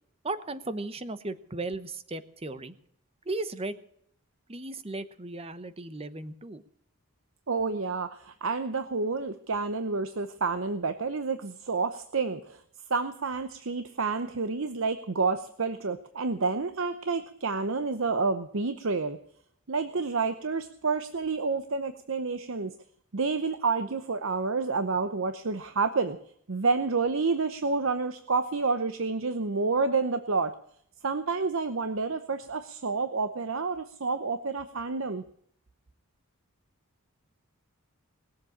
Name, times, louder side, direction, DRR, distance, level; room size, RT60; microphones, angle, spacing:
voice 1, 0.2-2.7 3.3-3.8 4.5-6.6, right 2 dB, 25° right, 12 dB, 0.9 m, -36 dB
voice 2, 7.5-12.6 12.9-19.2 19.7-22.7 23.1-26.2 26.5-30.5 31.0-35.2, right 4 dB, 65° right, 10 dB, 0.8 m, -29 dB
20.0 x 7.6 x 8.5 m, 0.68 s
head